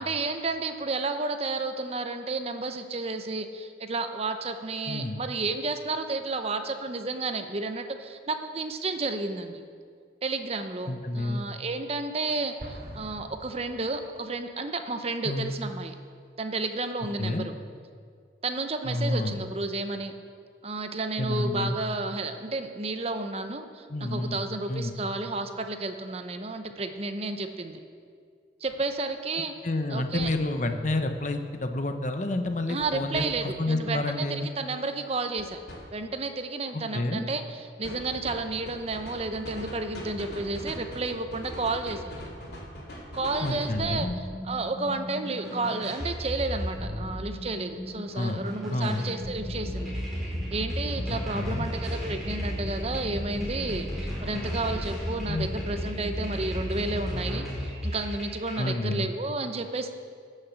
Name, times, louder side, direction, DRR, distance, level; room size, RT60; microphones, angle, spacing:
voice 1, 0.0-9.6 10.2-15.9 16.4-17.5 18.4-20.1 20.6-27.8 28.6-29.5 29.9-30.3 32.7-35.6 35.9-37.4 37.8-42.3 43.1-44.1 44.4-49.9 50.5-59.9, right 3 dB, 35° right, 7 dB, 0.8 m, -31 dB
voice 2, 4.9-5.2 10.9-11.5 15.2-15.5 17.2-17.4 18.8-19.4 21.2-21.8 23.9-25.0 29.6-34.5 36.7-37.2 43.4-44.2 48.1-48.4 48.7-49.1 51.3-51.7 55.3-55.5 58.5-59.1, left 2 dB, 45° left, 7 dB, 0.9 m, -29 dB
Explosion, 12.6-14.4, equal, 55° right, 2.0 m, -44 dB
sound 1, 28.7-28.8 30.2-30.4 32.8-33.3 35.4-35.8 37.8-43.8, equal, 70° left, 2.9 m, -40 dB
sound 2, 43.8-58.7, equal, ahead, 4.1 m, -34 dB
16.0 x 6.6 x 7.1 m, 2.1 s
head